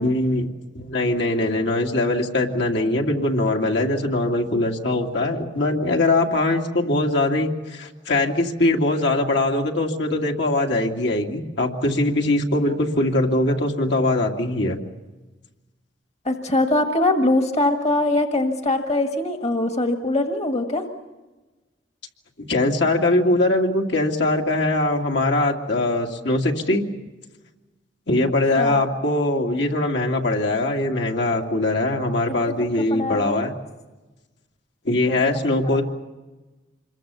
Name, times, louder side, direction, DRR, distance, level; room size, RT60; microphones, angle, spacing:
voice 1, 0.0-14.8 22.5-26.8 28.1-33.5 34.8-35.8, left 2 dB, 65° left, 1 dB, 2.5 m, -22 dB
voice 2, 16.2-20.8 28.6-28.8 32.5-32.6 32.9-33.4 35.1-35.2, left 2 dB, 35° left, 5 dB, 1.7 m, -22 dB
26.5 x 22.5 x 7.0 m, 1.2 s
head